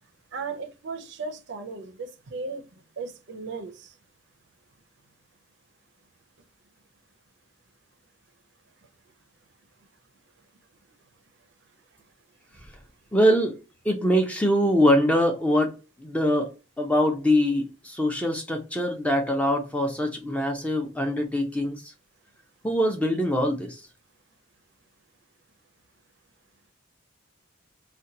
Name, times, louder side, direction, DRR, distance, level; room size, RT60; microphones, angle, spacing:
voice 1, 0.3-3.9, right 4 dB, 55° right, 0.5 m, -36 dB
voice 2, 13.1-13.6 13.8-15.7 16.0-16.5 16.8-21.9 22.6-23.8, equal, 5° left, 0.4 m, -23 dB
2.8 x 2.2 x 3.7 m
head